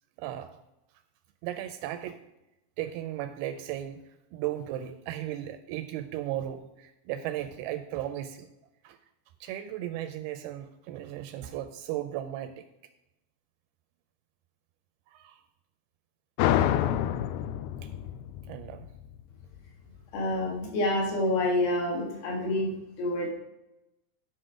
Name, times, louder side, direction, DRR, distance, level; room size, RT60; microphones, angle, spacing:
voice 1, 0.2-0.5 1.4-2.2 2.8-4.0 4.3-8.5 8.8-9.0 9.4-12.6 15.1-15.4 18.5-18.9, right 12 dB, 80° right, 9 dB, 2.3 m, -36 dB
sound 1, 16.4-19.7, left 11 dB, 80° left, 2.4 m, -28 dB
voice 2, 20.1-23.3, left 1 dB, 65° left, -1 dB, 3.8 m, -28 dB
11.5 x 5.9 x 4.9 m, 0.94 s
omnidirectional pair, 4.8 m